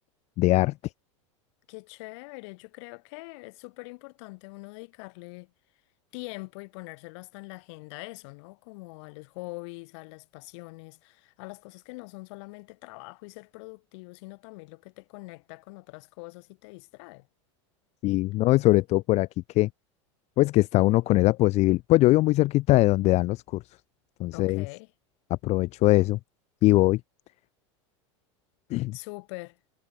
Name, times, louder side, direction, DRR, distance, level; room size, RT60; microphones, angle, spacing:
voice 1, 0.4-0.7 18.0-19.3 19.6-19.7 20.4-23.6 24.2-24.7 25.3-26.2 26.6-27.0 28.7-29.0, left 18 dB, 45° left, 0.5 m, -21 dB
voice 2, 1.7-5.5 6.1-17.3 24.3-24.9 28.9-29.6, left 28 dB, 65° left, 3.8 m, -43 dB
hypercardioid pair, 100°, 16 cm